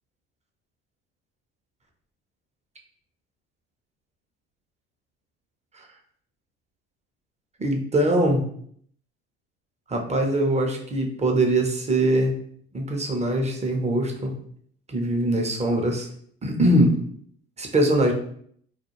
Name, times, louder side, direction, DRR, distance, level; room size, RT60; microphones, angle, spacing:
voice 1, 7.6-8.4 9.9-12.3 12.7-14.3 14.9-16.1 16.4-16.9 17.6-18.1, right 1 dB, 20° right, 2 dB, 0.7 m, -22 dB
2.4 x 2.2 x 3.0 m, 0.62 s
hypercardioid pair, 70°, 34 cm